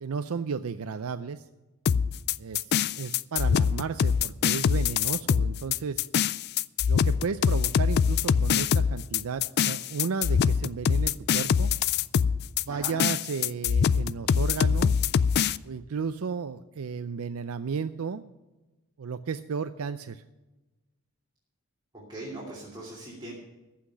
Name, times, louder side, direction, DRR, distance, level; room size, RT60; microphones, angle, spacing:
voice 1, 0.0-1.5 2.4-6.0 6.9-11.7 12.7-15.0 15.6-18.2 19.0-20.2, right 5 dB, 70° right, 11 dB, 0.5 m, -33 dB
sound 1, 1.9-15.6, left 7 dB, 45° left, 0.3 m, -24 dB
voice 2, 22.1-23.3, right 1 dB, 20° right, -5 dB, 2.8 m, -40 dB
14.5 x 5.8 x 9.9 m, 1.1 s
head